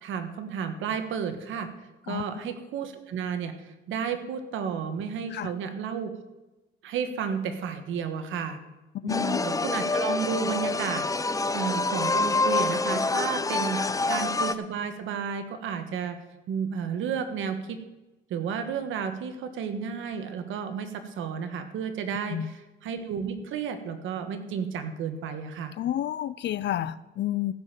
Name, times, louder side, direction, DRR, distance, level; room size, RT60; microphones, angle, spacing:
voice 1, 0.0-1.7 2.1-6.1 6.8-8.6 9.0-16.2 16.5-17.8 18.3-25.7, right 7 dB, 85° right, 8 dB, 1.4 m, -32 dB
voice 2, 2.1-2.5 5.3-5.5 8.9-9.5 13.7-14.0 22.3-22.5 25.8-27.5, left 12 dB, 60° left, 17 dB, 0.5 m, -31 dB
sound 1, 9.1-14.5, left 3 dB, 15° left, 0.6 m, -27 dB
15.5 x 5.4 x 7.5 m, 1.0 s
cardioid pair, 90°, 20 cm